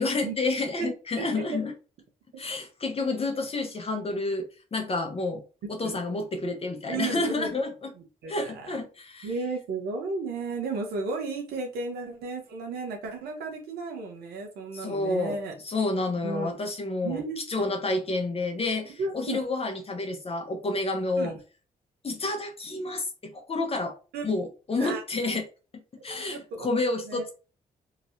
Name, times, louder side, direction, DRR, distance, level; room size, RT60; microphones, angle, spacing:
voice 1, 0.0-1.7 2.4-5.4 5.7-7.9 8.3-9.3 14.7-15.4 15.6-17.2 17.5-21.3 22.0-23.9 24.2-25.4 26.0-27.3, left 2 dB, 35° left, 4 dB, 0.8 m, -29 dB
voice 2, 1.2-1.6 5.8-6.0 6.9-7.5 8.0-8.8 9.2-15.5 16.2-16.5 17.0-17.6 19.0-19.4 21.2-21.4 24.1-24.3 24.8-25.4 26.1-27.2, right 4 dB, 80° right, 2 dB, 0.9 m, -34 dB
2.9 x 2.8 x 2.7 m, 0.35 s
supercardioid pair, 50°, 16 cm